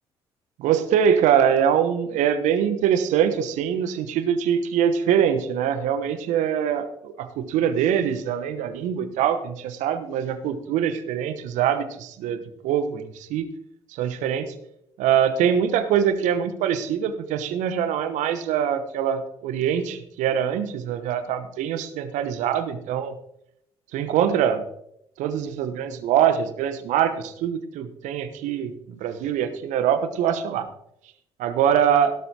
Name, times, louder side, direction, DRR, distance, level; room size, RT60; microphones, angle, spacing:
voice 1, 0.6-13.5 13.9-14.5 15.0-23.1 23.9-24.6 25.2-28.7 29.0-30.7 31.4-32.1, right 8 dB, 65° right, 10 dB, 1.1 m, -23 dB
16.5 x 12.5 x 2.9 m, 0.76 s
figure-of-eight pair, 50°, 14 cm